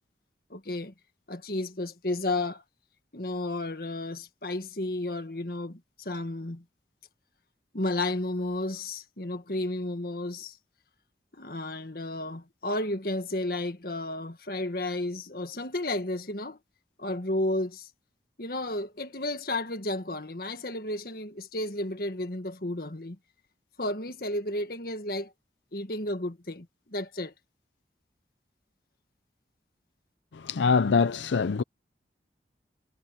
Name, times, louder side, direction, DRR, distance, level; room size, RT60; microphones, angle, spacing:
voice 1, 0.5-0.9 1.3-2.6 3.1-6.6 7.7-10.6 11.4-16.6 17.0-17.9 18.4-23.2 23.8-25.3 25.7-27.3, left 1 dB, 55° left, 1.8 m, -32 dB
voice 2, 30.4-31.6, left 5 dB, 85° left, 0.5 m, -23 dB
head